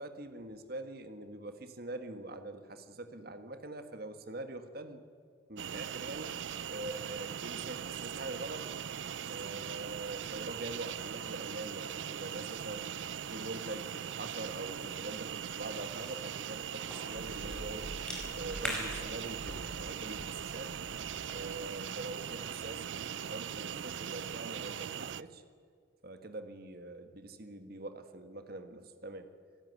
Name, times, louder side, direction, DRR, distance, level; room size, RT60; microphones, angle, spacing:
voice 1, 0.0-5.0 5.5-6.4 6.7-8.7 9.3-12.9 13.3-17.9 18.3-20.7 21.3-25.4 26.0-29.3, right 2 dB, 55° right, 8 dB, 1.8 m, -44 dB
sound 1, 5.6-25.2, right 8 dB, 80° right, 0.5 m, -40 dB
Cough / Chewing mastication, 15.4-21.4, equal, 5° left, 5.1 m, -44 dB
27.0 x 14.0 x 9.8 m, 2.1 s
head